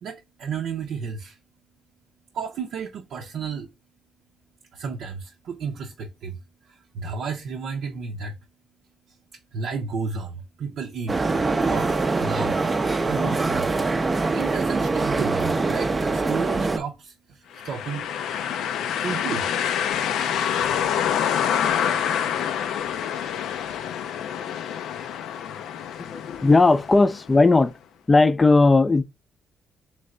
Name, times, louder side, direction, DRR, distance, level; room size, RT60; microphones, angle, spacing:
voice 1, 0.0-1.4 2.3-3.7 4.7-8.4 9.1-9.2 9.5-11.9 12.2-12.6 13.0-13.8 14.3-18.1 19.0-19.5, right 5 dB, 75° right, 0.6 m, -32 dB
sound 1, 11.1-16.8, right 3 dB, 25° right, 0.5 m, -23 dB
sound 2, 17.6-27.4, left 9 dB, 80° left, 0.4 m, -27 dB
voice 2, 26.0-27.7 28.1-29.0, left 3 dB, 25° left, 0.4 m, -17 dB
3.3 x 3.2 x 3.7 m
cardioid pair, 90°, 0 cm